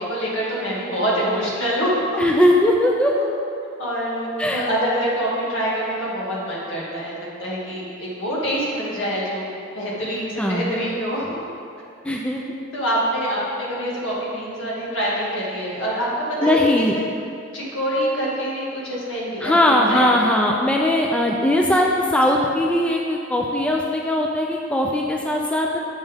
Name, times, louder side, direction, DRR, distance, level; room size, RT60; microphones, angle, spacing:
voice 1, 0.0-2.2 3.2-3.3 3.8-9.5 9.7-11.4 12.7-16.1 16.4-16.9 17.5-20.1, equal, 70° left, -5 dB, 1.8 m, -25 dB
voice 2, 2.2-3.1 4.4-4.6 10.4-10.7 12.0-12.4 16.4-16.9 19.4-25.8, left 1 dB, 5° left, -1 dB, 0.4 m, -19 dB
8.0 x 5.4 x 3.5 m, 2.4 s
head